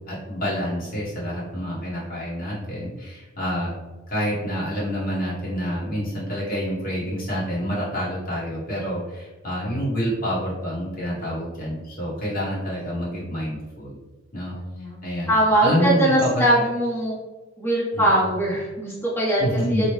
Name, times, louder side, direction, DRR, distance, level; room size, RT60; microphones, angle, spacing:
voice 1, 0.0-3.7 4.1-14.0 14.3-14.5 15.0-15.3 15.6-16.6 18.0-18.1 19.4-19.9, equal, 45° left, -7 dB, 1.2 m, -27 dB
voice 2, 14.5-15.0 15.3-17.2 17.6-19.4 19.7-19.9, right 1 dB, 10° left, -7 dB, 0.9 m, -21 dB
2.9 x 2.1 x 3.0 m, 1.1 s
head